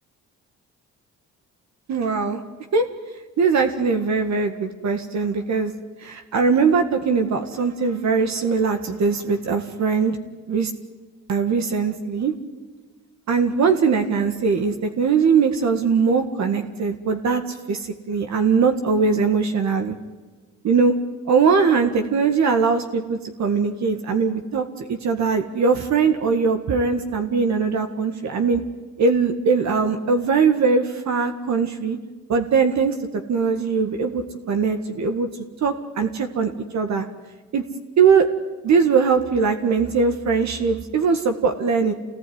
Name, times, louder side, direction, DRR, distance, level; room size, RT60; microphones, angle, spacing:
voice 1, 1.9-2.4 2.7-2.9 3.4-5.7 6.0-10.2 10.5-10.7 11.3-12.3 13.3-17.4 17.7-19.9 20.6-21.0 21.3-28.6 29.0-32.0 32.3-32.9 33.3-35.3 35.6-37.1 37.5-37.6 38.0-38.3 38.6-41.9, right 5 dB, 65° right, 6 dB, 1.9 m, -21 dB
27.0 x 18.5 x 9.6 m, 1.4 s
cardioid pair, 90°, 30 cm